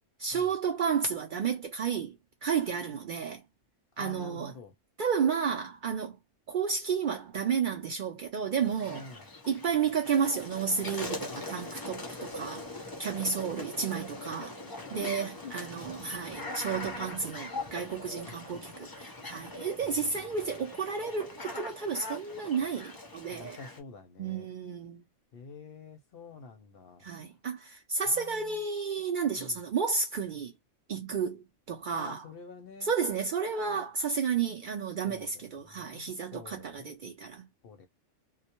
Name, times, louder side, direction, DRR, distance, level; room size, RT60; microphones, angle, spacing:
voice 1, 0.2-2.2 2.4-3.4 4.0-4.5 5.0-6.2 6.5-9.0 9.5-12.7 13.0-14.5 14.9-23.6 24.2-25.0 27.0-30.5 30.9-32.2 32.8-37.5, right 6 dB, 65° right, 0.5 m, -32 dB
voice 2, 4.0-4.7 8.9-9.2 11.2-11.4 13.2-13.9 14.2-15.5 18.2-18.7 19.8-20.4 23.3-24.5 25.3-27.1 28.1-28.6 29.4-29.6 31.9-32.9 35.0-35.3 35.6-36.9 37.6-37.9, left 4 dB, 60° left, 0.7 m, -48 dB
sound 1, 8.5-23.8, left 2 dB, 35° left, 0.3 m, -42 dB
2.2 x 2.1 x 2.8 m
omnidirectional pair, 1.3 m